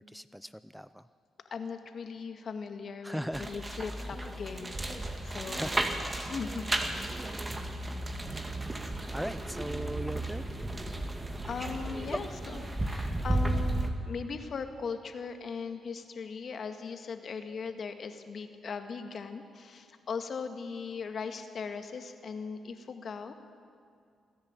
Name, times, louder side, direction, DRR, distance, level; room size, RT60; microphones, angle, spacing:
voice 1, 0.1-1.1 3.0-3.5 5.5-5.9 9.1-10.6 12.1-12.2, equal, ahead, 14 dB, 0.5 m, -38 dB
voice 2, 1.5-5.7 6.1-7.3 11.4-23.3, left 5 dB, 60° left, 7 dB, 1.8 m, -39 dB
sound 1, 3.3-13.9, right 1 dB, 25° right, 2.2 m, -34 dB
27.5 x 10.5 x 8.9 m, 2.3 s
supercardioid pair, 65°, 0 cm